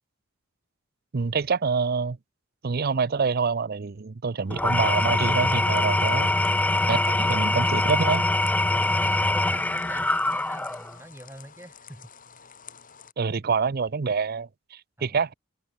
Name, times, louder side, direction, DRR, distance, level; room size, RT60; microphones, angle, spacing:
voice 1, 1.1-2.2 2.6-6.3 6.9-8.2 13.2-15.3, right 5 dB, 50° right, 0.6 m, -26 dB
Engine / Tools, 4.5-10.9, left 2 dB, 5° left, 0.5 m, -23 dB
sound 1, 4.9-13.1, left 7 dB, 40° left, 6.4 m, -50 dB
voice 2, 6.8-7.6 8.7-12.1 12.4-12.5 15.0-15.2, right 1 dB, 10° right, 4.6 m, -44 dB
head